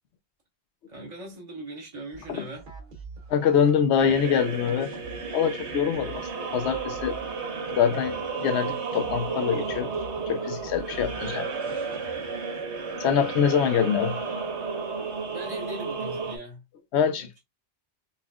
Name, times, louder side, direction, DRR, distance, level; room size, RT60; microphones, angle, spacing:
voice 1, 0.9-2.7 15.3-16.6 17.1-17.3, right 1 dB, 30° right, 1.6 m, -40 dB
sound 1, 2.1-12.6, right 3 dB, 50° right, 1.0 m, -46 dB
voice 2, 3.3-4.9 5.3-7.2 7.8-9.9 10.2-11.5 13.0-14.2 16.9-17.4, left 7 dB, 75° left, 0.9 m, -24 dB
sound 2, 4.0-16.4, right 4 dB, 80° right, 1.3 m, -33 dB
5.5 x 2.4 x 2.3 m
omnidirectional pair, 1.1 m